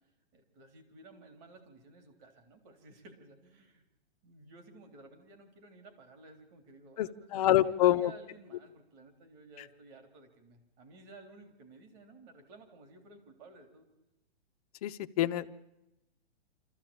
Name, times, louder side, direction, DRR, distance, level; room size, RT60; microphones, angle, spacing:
voice 1, 0.3-3.8 4.2-13.9, right 2 dB, 30° right, 5 dB, 3.6 m, -55 dB
voice 2, 7.0-8.1 14.8-15.5, left 13 dB, 35° left, 9 dB, 0.8 m, -27 dB
26.0 x 14.0 x 8.9 m, 0.94 s
hypercardioid pair, 160°, 34 cm